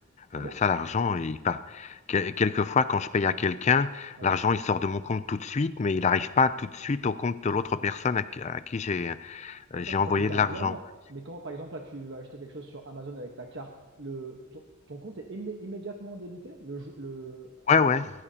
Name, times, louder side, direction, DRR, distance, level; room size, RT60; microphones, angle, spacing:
voice 1, 0.3-10.7 17.7-18.1, left 5 dB, 35° left, 13 dB, 0.4 m, -26 dB
voice 2, 9.8-10.8 11.1-17.9, right 2 dB, 60° right, 1 dB, 1.2 m, -40 dB
24.0 x 15.5 x 2.9 m, 1.2 s
head